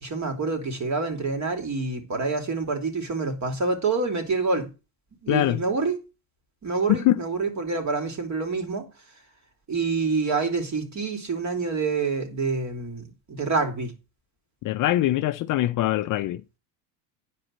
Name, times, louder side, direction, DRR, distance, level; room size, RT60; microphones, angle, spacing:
voice 1, 0.0-4.7 5.2-6.0 6.6-8.9 9.7-13.9, right 4 dB, 35° right, 3.2 m, -27 dB
voice 2, 5.3-5.6 6.9-7.2 14.6-16.6, left 15 dB, 45° left, 0.6 m, -23 dB
9.8 x 5.0 x 7.6 m
hypercardioid pair, 85°, 47 cm